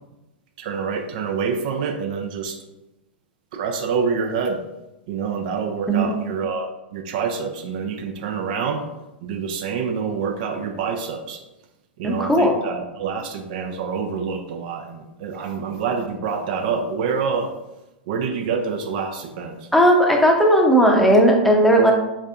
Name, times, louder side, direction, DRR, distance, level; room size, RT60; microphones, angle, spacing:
voice 1, 0.6-2.6 3.5-4.6 5.1-8.8 9.2-11.4 12.0-17.5 18.1-19.7, right 5 dB, 50° right, 5 dB, 0.4 m, -27 dB
voice 2, 12.0-12.5 19.7-21.9, equal, ahead, 0 dB, 0.7 m, -16 dB
4.8 x 3.5 x 2.4 m, 0.96 s
figure-of-eight pair, 100°, 6 cm